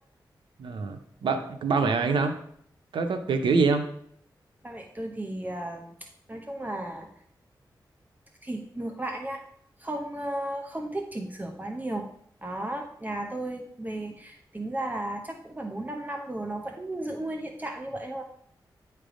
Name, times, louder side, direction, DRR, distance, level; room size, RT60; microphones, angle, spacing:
voice 1, 0.6-2.3 2.9-3.9, right 4 dB, 90° right, 6 dB, 0.7 m, -25 dB
voice 2, 4.6-5.9 6.3-7.1 8.4-9.4 9.8-12.1 12.4-18.2, right 1 dB, 20° right, 2 dB, 1.0 m, -34 dB
9.9 x 3.4 x 5.1 m, 0.67 s
cardioid pair, 65°, 8 cm